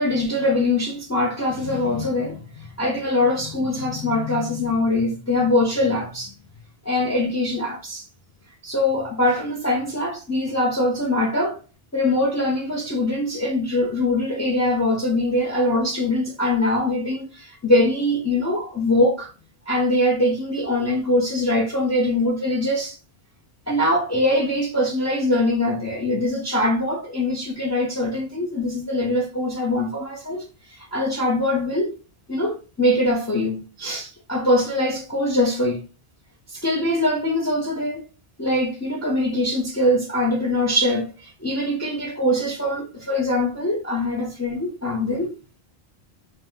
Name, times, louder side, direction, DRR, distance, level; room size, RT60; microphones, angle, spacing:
voice 1, 0.0-6.3 6.8-8.1 8.6-11.6 11.9-19.3 19.7-23.0 23.7-31.9 32.3-35.8 36.5-38.0 38.4-45.4, left 1 dB, 20° left, 0.6 m, -23 dB
2.9 x 2.2 x 3.4 m
omnidirectional pair, 1.0 m